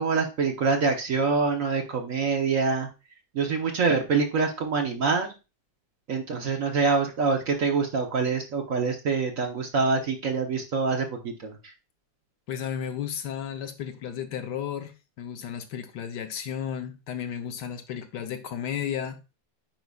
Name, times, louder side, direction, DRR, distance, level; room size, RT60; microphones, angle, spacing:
voice 1, 0.0-2.9 3.3-5.3 6.1-11.7, right 4 dB, 50° right, 1.2 m, -25 dB
voice 2, 12.5-19.2, left 8 dB, 70° left, 1.4 m, -33 dB
9.3 x 4.8 x 2.3 m
omnidirectional pair, 2.0 m